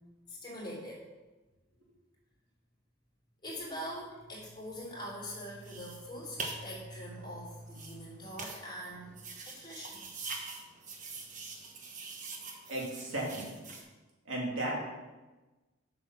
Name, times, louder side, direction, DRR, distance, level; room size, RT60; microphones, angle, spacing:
voice 1, 0.3-1.0 3.4-10.3, equal, 25° left, -5 dB, 3.3 m, -43 dB
sound 1, 5.4-13.8, right 3 dB, 40° right, 1.2 m, -44 dB
voice 2, 12.7-13.5 14.2-14.7, right 1 dB, 80° right, -3 dB, 2.9 m, -35 dB
7.7 x 6.1 x 5.8 m, 1.2 s
head